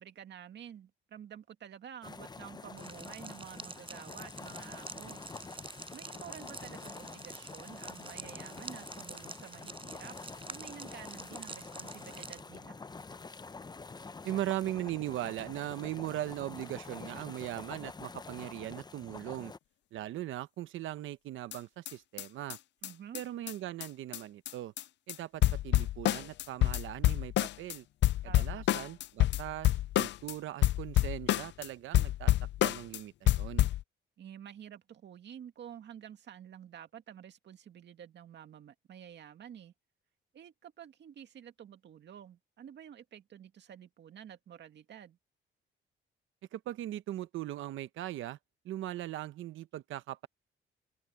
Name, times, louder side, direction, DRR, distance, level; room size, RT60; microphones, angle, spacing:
voice 1, 0.0-5.2 5.9-10.2 10.5-12.8 22.8-23.2 28.2-28.6 34.2-39.7 40.3-45.2, right 9 dB, 60° right, 2.2 m, -50 dB
sound 1, 2.0-19.6, left 4 dB, 20° left, 0.8 m, -47 dB
sound 2, 2.8-12.4, right 3 dB, 25° right, 6.8 m, -48 dB
voice 2, 14.2-19.5 19.9-22.6 23.1-24.7 25.1-27.9 28.2-32.3 32.6-33.7 46.5-48.4 48.6-50.3, right 13 dB, 80° right, 1.0 m, -39 dB
sound 3, 21.5-21.6 21.9-22.0 22.2-22.3 22.5-22.6 22.8-22.9 23.1-23.2 23.5-23.6 23.8-23.9 24.1-24.2 24.4-24.8 25.1-25.2 25.4-27.8 28.0-30.3 30.6-31.7 31.9-33.0 33.3-33.8, left 14 dB, 65° left, 0.5 m, -28 dB
open air
cardioid pair, 90°, 20 cm